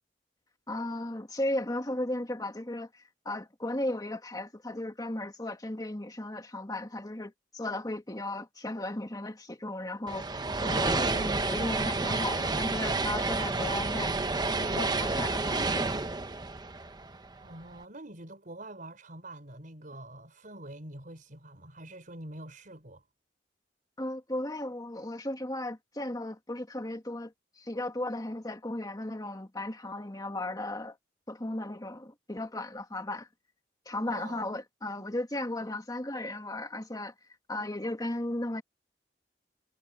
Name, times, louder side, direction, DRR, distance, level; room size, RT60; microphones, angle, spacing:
voice 1, 0.7-14.2 14.5-16.0 24.0-31.0 31.3-33.3 33.9-37.1 37.5-38.6, left 1 dB, 20° left, 1.9 m, -35 dB
sound 1, 10.1-17.5, right 3 dB, 25° right, 1.0 m, -30 dB
voice 2, 17.3-23.0 34.1-34.5, right 1 dB, 50° right, 5.2 m, -46 dB
head